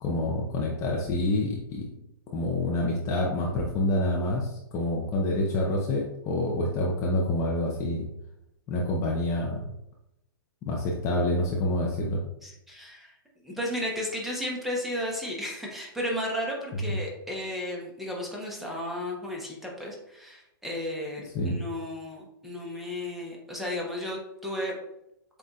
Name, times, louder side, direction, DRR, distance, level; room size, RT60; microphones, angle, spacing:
voice 1, 0.0-1.9 2.3-8.1 8.7-9.7 10.6-12.2 16.8-17.0 21.3-21.6, left 1 dB, 25° left, -2 dB, 0.7 m, -27 dB
voice 2, 12.4-13.1 13.4-24.7, left 1 dB, ahead, -3 dB, 1.0 m, -34 dB
7.5 x 2.6 x 2.4 m, 0.82 s
hypercardioid pair, 135°, 12 cm